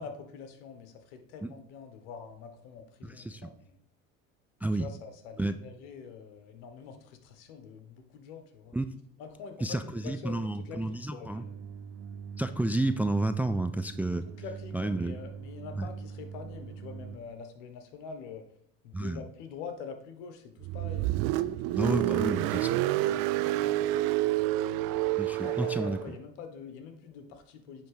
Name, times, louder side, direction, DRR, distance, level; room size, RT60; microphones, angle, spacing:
voice 1, 0.0-3.8 4.6-8.7 9.2-11.6 14.4-18.4 18.8-21.9 22.2-24.3 25.4-27.9, left 6 dB, 75° left, 7 dB, 1.3 m, -45 dB
voice 2, 3.0-3.5 4.6-4.9 5.4-5.5 8.7-8.9 9.6-11.4 12.4-14.2 14.7-15.2 15.8-15.9 18.9-19.2 21.8-22.8 25.2-26.0, right 2 dB, 5° right, 11 dB, 0.3 m, -30 dB
sound 1, 11.3-17.2, right 6 dB, 40° right, 0.8 m, -43 dB
Car, 20.6-26.1, right 16 dB, 65° right, 0.5 m, -28 dB
9.0 x 3.6 x 5.0 m, 0.66 s
hypercardioid pair, 75°, 36 cm